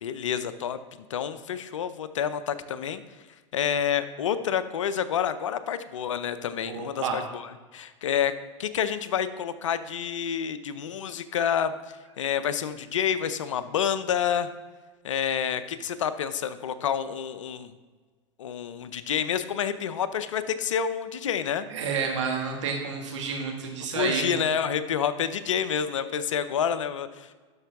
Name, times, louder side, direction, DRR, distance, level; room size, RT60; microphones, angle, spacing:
voice 1, 0.0-3.0 3.5-8.3 8.6-11.7 12.2-14.5 15.0-17.7 18.4-21.7 23.9-27.3, left 8 dB, 80° left, 13 dB, 0.6 m, -28 dB
voice 2, 6.7-7.2 21.7-24.4, right 5 dB, 75° right, 2 dB, 1.9 m, -30 dB
12.0 x 5.5 x 3.5 m, 1.4 s
hypercardioid pair, 105°, 16 cm